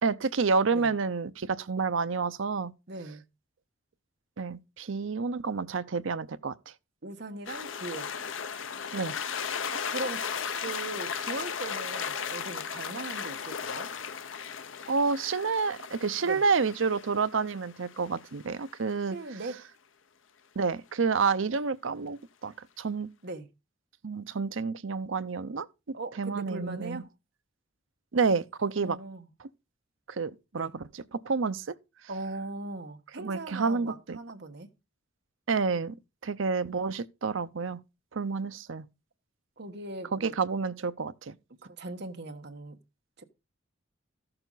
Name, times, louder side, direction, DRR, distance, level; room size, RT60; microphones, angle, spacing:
voice 1, 0.0-2.7 4.4-6.5 8.9-9.1 14.9-19.2 20.6-23.1 24.0-25.7 26.2-27.0 28.1-29.0 30.1-31.6 33.2-34.2 35.5-36.0 36.2-37.8 38.1-38.9 40.1-41.4, right 5 dB, 80° right, 0.7 m, -29 dB
voice 2, 2.9-3.2 7.0-8.1 9.7-13.9 16.2-16.4 19.1-19.6 23.2-23.5 25.9-27.1 28.8-29.3 30.5-30.7 32.1-34.7 39.6-40.4 41.6-42.8 43.2-43.3, right 2 dB, 60° right, 1.3 m, -39 dB
sound 1, 7.5-18.9, left 7 dB, 80° left, 0.8 m, -36 dB
14.0 x 6.9 x 4.0 m
head